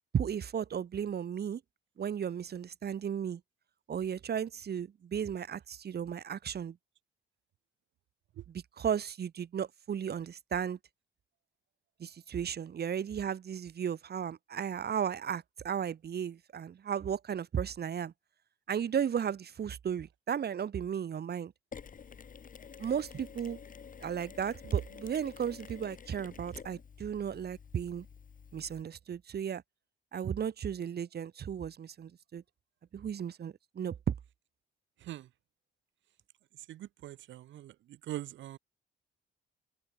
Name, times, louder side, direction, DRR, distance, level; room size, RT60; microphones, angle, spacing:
voice 1, 0.1-1.6 2.0-3.4 3.9-6.8 8.5-10.8 12.0-18.1 18.7-21.5 22.8-23.6 24.0-28.1 28.5-29.6 30.1-32.4 32.9-34.1, right 8 dB, 55° right, 3.1 m, -35 dB
Mechanisms, 21.7-28.8, left 6 dB, 45° left, 2.8 m, -50 dB
voice 2, 36.7-37.7 38.1-38.6, right 13 dB, 70° right, 0.7 m, -42 dB
open air
cardioid pair, 90°, 20 cm